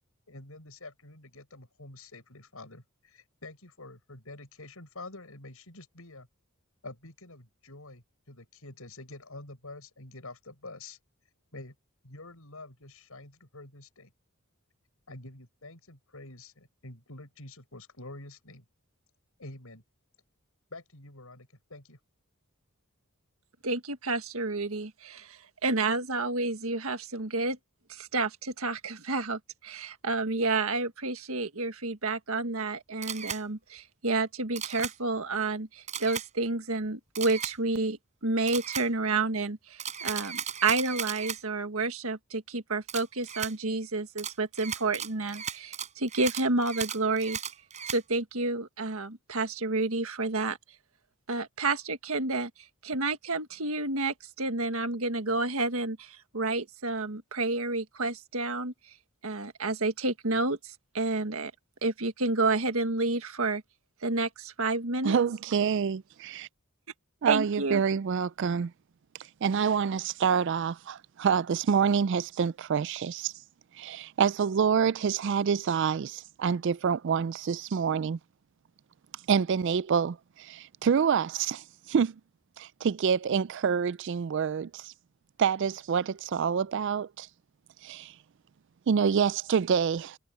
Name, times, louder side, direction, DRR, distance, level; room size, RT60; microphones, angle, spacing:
voice 1, 0.3-6.3 6.8-11.0 11.5-11.8 12.0-14.1 15.1-18.6 19.4-19.8 20.7-22.0, left 2 dB, 75° left, 5.9 m, -47 dB
voice 2, 23.6-27.6 27.9-47.4 47.9-50.6 51.3-52.5 52.8-58.7 59.2-61.5 61.8-63.6 64.0-65.2 67.2-67.8, right 3 dB, 75° right, 1.7 m, -30 dB
Camera, 33.0-33.4 34.6-34.9 35.9-36.3 37.1-37.5 38.5-38.9 39.8-41.4 42.9-43.5 44.2-48.0, right 8 dB, 35° right, 4.2 m, -36 dB
voice 3, 65.0-66.5 67.2-68.7 69.4-73.3 73.8-78.2 79.3-82.2 82.6-84.9 85.4-87.3 87.8-88.1 88.9-90.2, right 6 dB, 55° right, 0.3 m, -27 dB
head